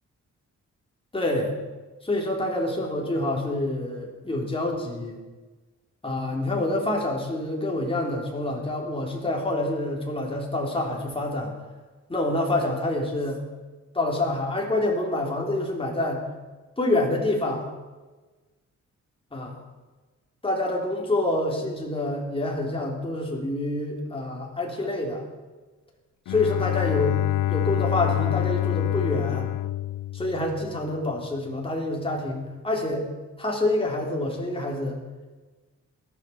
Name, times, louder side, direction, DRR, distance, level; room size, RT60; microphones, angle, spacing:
voice 1, 1.1-1.5 2.0-5.2 6.0-11.5 12.1-13.4 13.9-16.2 16.8-17.6 19.3-19.6 20.4-25.2 26.3-27.2 27.5-29.5 30.1-33.1 33.4-35.0, left 2 dB, 20° left, -1 dB, 3.2 m, -27 dB
Bowed string instrument, 26.3-30.9, left 14 dB, 75° left, 0.5 m, -26 dB
18.5 x 13.0 x 5.9 m, 1.3 s
wide cardioid pair, 160°, 30 cm